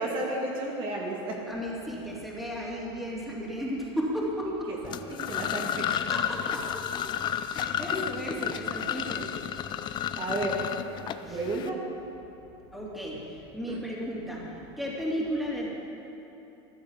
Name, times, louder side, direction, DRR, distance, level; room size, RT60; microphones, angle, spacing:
voice 1, 0.0-1.4 4.8-5.9 10.2-11.8 13.7-13.8, right 2 dB, 35° right, -2 dB, 2.2 m, -32 dB
voice 2, 1.5-4.7 5.9-9.3 11.2-11.4 12.7-15.7, equal, ahead, -4 dB, 2.9 m, -34 dB
sound 1, 4.8-11.7, left 10 dB, 30° left, 0.5 m, -32 dB
14.5 x 9.6 x 7.5 m, 3.0 s
supercardioid pair, 130°, 15 cm